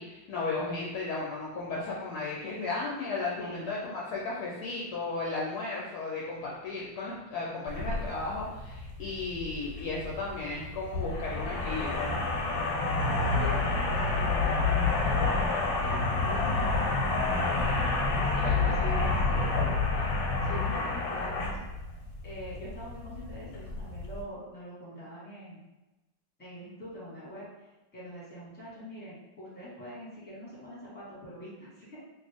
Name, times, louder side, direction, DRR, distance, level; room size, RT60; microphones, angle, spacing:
voice 1, 0.0-12.1 18.3-18.7, left 3 dB, 70° left, -5 dB, 1.0 m, -35 dB
voice 2, 3.4-3.8 13.3-15.2 15.8-17.8 18.2-20.1 20.4-21.6 22.2-25.6 26.4-32.0, equal, 5° left, -8 dB, 0.9 m, -43 dB
sound 1, 7.7-24.2, left 3 dB, 90° left, 1.3 m, -29 dB
2.9 x 2.6 x 3.4 m, 1.1 s
omnidirectional pair, 2.0 m